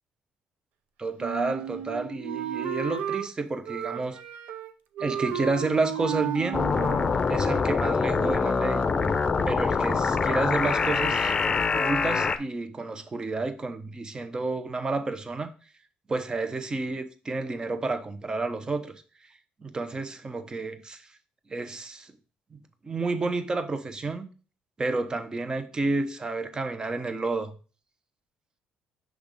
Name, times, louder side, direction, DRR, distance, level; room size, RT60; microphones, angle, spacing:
voice 1, 1.0-4.2 5.0-6.6 7.3-8.9 9.5-15.5 16.1-18.9 19.6-21.0 21.5-22.1 22.5-24.3 24.8-27.5, right 3 dB, 30° right, 0.8 m, -30 dB
Wind instrument woodwind instrument, 1.2-3.3 3.7-4.7 5.0-7.2, right 9 dB, 80° right, 0.6 m, -33 dB
sound 1, 6.5-12.4, left 5 dB, 35° left, 0.6 m, -25 dB
6.1 x 3.5 x 5.2 m
cardioid pair, 85°, 3 cm